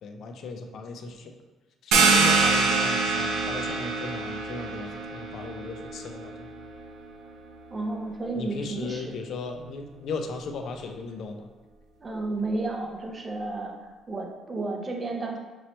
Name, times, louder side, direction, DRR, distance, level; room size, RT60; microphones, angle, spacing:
voice 1, 0.0-1.3 1.8-6.5 8.4-11.5, left 4 dB, 50° left, 5 dB, 0.4 m, -36 dB
sound 1, 1.9-7.3, right 4 dB, 75° right, 0.6 m, -25 dB
voice 2, 7.7-9.2 12.0-13.8 14.1-15.4, right 2 dB, 20° right, 2 dB, 0.5 m, -32 dB
5.3 x 3.0 x 3.0 m, 1.2 s
cardioid pair, 170°, 0 cm